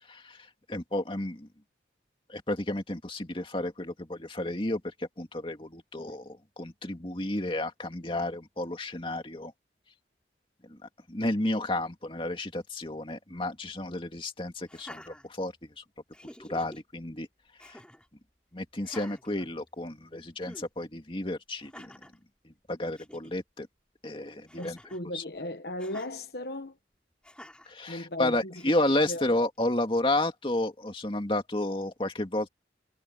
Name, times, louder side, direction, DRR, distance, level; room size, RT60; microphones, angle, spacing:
voice 1, 0.7-1.5 2.3-9.5 11.1-15.5 16.4-17.3 17.7-17.8 18.5-21.9 22.7-23.7 24.0-24.8 25.1-25.2 27.7-32.5, left 1 dB, 30° left, 2.4 m, -31 dB
Laughter, 14.6-15.8 16.1-16.8 17.6-18.1 18.8-20.0 20.4-20.7 21.6-22.2 22.7-22.8 22.9-23.3 24.5-25.1 25.8-26.1 27.2-27.7 28.5-29.1, left 1 dB, 5° left, 4.1 m, -49 dB
voice 2, 24.6-26.8 27.9-28.6 29.1-29.2, left 1 dB, 65° left, 1.2 m, -37 dB
head